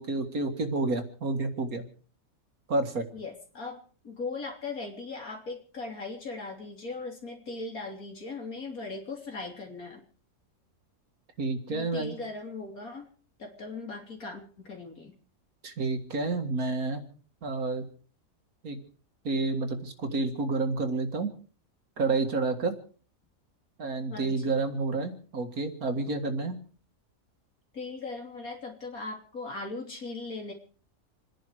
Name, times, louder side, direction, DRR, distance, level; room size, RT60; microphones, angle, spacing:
voice 1, 0.0-1.8 2.7-3.0 11.4-12.2 15.6-17.0 17.4-17.8 18.6-18.8 19.2-21.3 22.0-22.7 23.8-26.6, right 3 dB, 85° right, 6 dB, 2.4 m, -29 dB
voice 2, 3.1-10.0 11.7-13.1 13.4-15.1 24.1-24.6 27.7-30.5, left 3 dB, 80° left, 2 dB, 3.9 m, -39 dB
28.0 x 10.5 x 4.9 m, 0.42 s
omnidirectional pair, 1.5 m